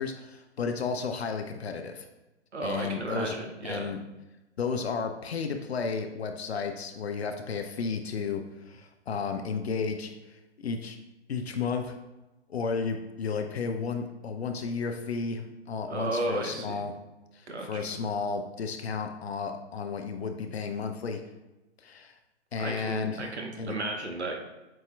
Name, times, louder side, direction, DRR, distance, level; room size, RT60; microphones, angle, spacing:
voice 1, 0.0-2.1 2.6-3.3 3.6-4.0 4.6-11.0 11.3-12.0 12.5-16.9 17.3-21.2 21.8-22.1 22.5-23.3 23.6-23.7, left 5 dB, 70° left, 5 dB, 0.5 m, -33 dB
voice 2, 2.5-3.9 15.9-16.8 17.5-18.0 22.6-24.3, right 2 dB, 75° right, 3 dB, 0.9 m, -34 dB
7.5 x 2.8 x 2.3 m, 1.0 s
figure-of-eight pair, 120°, 34 cm